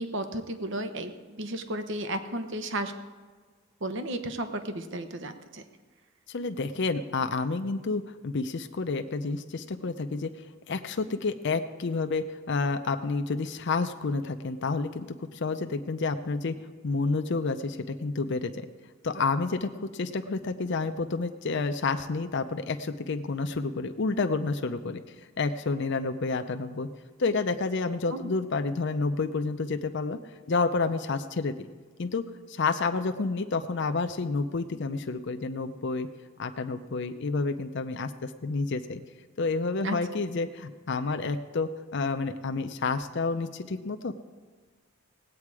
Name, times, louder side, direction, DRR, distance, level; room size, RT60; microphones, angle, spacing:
voice 1, 0.0-2.9 3.8-5.6 28.1-28.3 39.8-40.0, right 1 dB, 60° right, 8 dB, 0.9 m, -33 dB
voice 2, 6.3-10.3 10.7-16.5 16.8-18.7 19.0-25.0 25.4-26.9 27.2-30.2 30.5-31.5 32.0-36.1 36.4-39.0 39.4-44.1, left 3 dB, 60° left, 7 dB, 0.6 m, -29 dB
17.5 x 8.6 x 4.8 m, 1.4 s
head